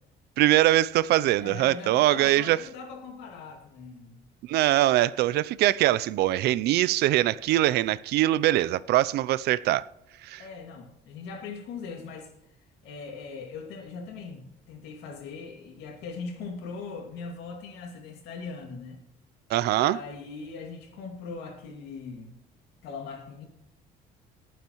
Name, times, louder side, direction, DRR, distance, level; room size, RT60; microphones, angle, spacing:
voice 1, 0.4-2.6 4.5-9.9 10.2-10.4 19.5-20.0, right 15 dB, 75° right, 0.4 m, -22 dB
voice 2, 1.4-4.2 10.4-12.3 12.8-14.4 14.7-19.0 19.8-22.4 22.8-23.5, left 4 dB, 90° left, 2.3 m, -40 dB
19.0 x 9.0 x 3.0 m
cardioid pair, 110°, 17 cm